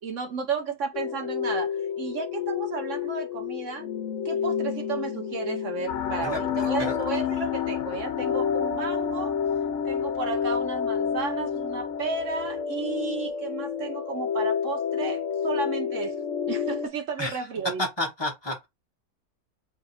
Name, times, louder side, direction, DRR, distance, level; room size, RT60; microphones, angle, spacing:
voice 1, 0.0-3.9 4.2-9.3 9.8-16.1 16.5-17.9, right 5 dB, 55° right, 0.9 m, -33 dB
sound 1, 0.9-16.9, left 7 dB, 55° left, 0.9 m, -29 dB
sound 2, 5.9-12.6, left 8 dB, 80° left, 1.3 m, -38 dB
voice 2, 17.8-18.7, left 1 dB, 20° left, 0.7 m, -30 dB
3.5 x 2.5 x 4.1 m
omnidirectional pair, 1.9 m